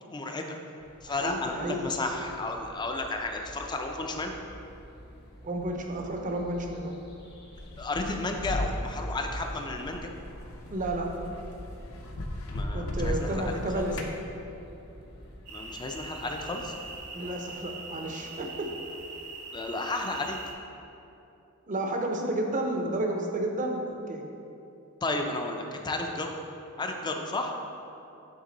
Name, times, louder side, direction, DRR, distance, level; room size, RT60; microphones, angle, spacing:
voice 1, 0.1-0.6 1.0-4.3 7.8-10.1 12.5-13.9 15.5-16.7 19.5-20.4 25.0-26.3 26.8-27.5, left 2 dB, 20° left, 3 dB, 0.4 m, -33 dB
sound 1, 0.8-17.1, equal, 50° left, 1.0 m, -50 dB
voice 2, 1.1-1.9 5.4-6.9 10.7-11.1 12.7-14.1 17.1-18.7 21.7-24.3, right 1 dB, 35° right, 2 dB, 0.6 m, -31 dB
sound 2, 7.6-14.2, left 1 dB, 65° left, 0.7 m, -36 dB
sound 3, 15.5-20.5, right 3 dB, 75° right, 0.9 m, -42 dB
8.1 x 3.6 x 3.9 m, 2.8 s
head